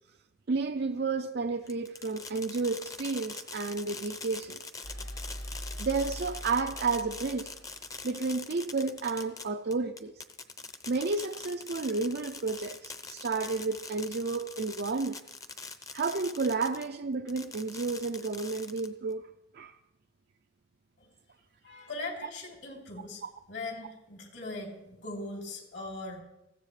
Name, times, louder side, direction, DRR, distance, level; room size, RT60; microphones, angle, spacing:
voice 1, 0.5-4.6 5.8-7.5 8.0-10.1 10.9-15.2 15.9-19.2 19.5-19.8 23.2-23.3, right 4 dB, 55° right, 0.5 m, -31 dB
Fireworks, 1.7-16.9 17.3-19.1, left 3 dB, 20° left, 0.8 m, -43 dB
sound 1, 4.8-8.6, equal, 85° left, 3.8 m, -42 dB
voice 2, 21.6-23.2 23.5-26.2, left 2 dB, 60° left, 3.3 m, -40 dB
20.5 x 15.5 x 3.3 m
head